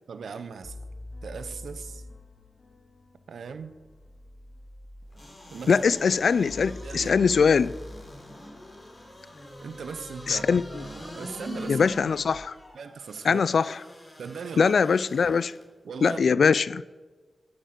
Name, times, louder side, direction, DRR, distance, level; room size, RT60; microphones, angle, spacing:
voice 1, 0.1-0.7 1.2-2.0 3.3-3.7 5.5-5.8 6.1-7.2 9.6-11.9 12.7-13.4 14.2-14.7 15.8-16.5, right 5 dB, 85° right, 0.7 m, -39 dB
sound 1, 0.6-12.4, left 2 dB, 60° left, 2.4 m, -46 dB
sound 2, 5.1-15.6 16.1-16.2, left 1 dB, 35° left, 4.0 m, -44 dB
voice 2, 5.7-7.7 10.3-10.6 11.7-12.5 13.2-13.8 14.6-15.5 16.0-16.8, left 5 dB, 75° left, 0.3 m, -22 dB
13.0 x 7.5 x 6.7 m
cardioid pair, 50°, 0 cm